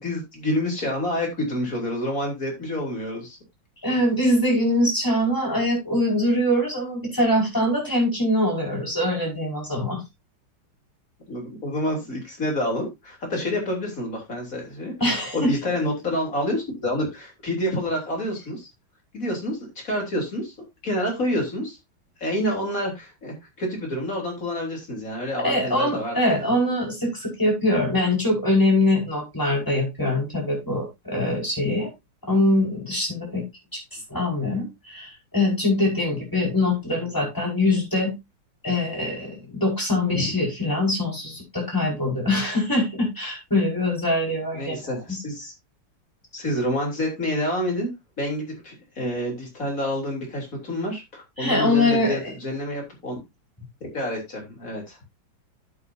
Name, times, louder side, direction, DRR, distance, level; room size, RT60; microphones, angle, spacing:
voice 1, 0.0-3.4 11.3-18.7 19.1-20.5 20.8-21.8 22.2-26.4 37.2-37.3 40.1-40.2 44.5-45.5 46.3-47.9 48.2-53.1 53.9-55.0, left 1 dB, 40° left, 1 dB, 3.9 m, -28 dB
voice 2, 3.8-10.0 15.0-15.5 25.4-31.9 32.3-33.4 33.7-38.1 38.6-44.9 51.4-52.3, left 1 dB, 10° left, -1 dB, 5.0 m, -23 dB
11.0 x 8.8 x 2.7 m, 0.21 s
omnidirectional pair, 2.1 m